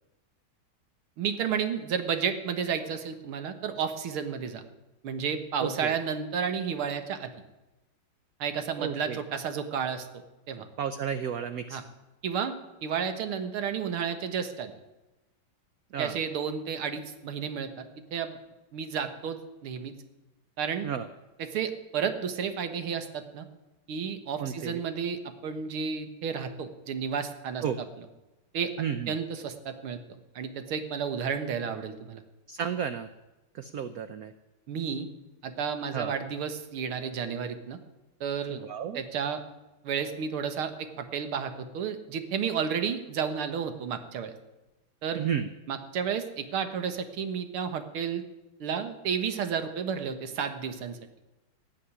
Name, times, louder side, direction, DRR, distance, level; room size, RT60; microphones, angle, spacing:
voice 1, 1.2-4.6 5.0-7.3 8.4-10.1 10.5-10.6 11.7-11.8 12.2-12.6 12.8-14.7 16.0-17.8 18.1-18.4 18.7-19.9 20.6-20.9 21.4-23.5 23.9-27.6 28.5-28.7 29.1-32.2 34.7-35.1 35.4-37.8 38.2-38.6 38.9-39.4 39.8-44.3 45.0-45.2 45.7-48.2 48.6-51.0, right 7 dB, 85° right, 8 dB, 2.2 m, -32 dB
voice 2, 5.6-5.9 8.8-9.2 10.8-11.8 15.9-16.2 20.8-21.1 24.4-24.8 27.6-27.8 28.8-29.2 32.5-33.1 33.5-34.3 35.9-36.1 38.5-39.0 45.1-45.5, right 8 dB, 70° right, 11 dB, 0.9 m, -32 dB
17.0 x 6.6 x 9.8 m, 1.0 s
omnidirectional pair, 2.3 m